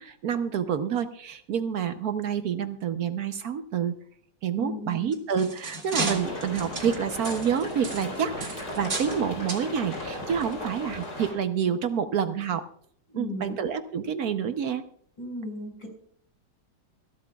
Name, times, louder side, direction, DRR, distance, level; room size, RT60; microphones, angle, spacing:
voice 1, 0.0-3.9 4.4-12.6 13.1-14.8, right 7 dB, 65° right, 10 dB, 1.1 m, -28 dB
voice 2, 4.6-5.2 13.1-13.6 15.2-15.9, left 2 dB, 90° left, 1 dB, 5.6 m, -36 dB
sound 1, 5.0-9.2 9.5-9.7 10.4-10.5 11.0-11.1, right 3 dB, 40° right, 2.2 m, -34 dB
sound 2, 5.9-11.3, left 1 dB, 65° left, 4.9 m, -36 dB
25.5 x 12.0 x 2.3 m, 0.63 s
omnidirectional pair, 2.0 m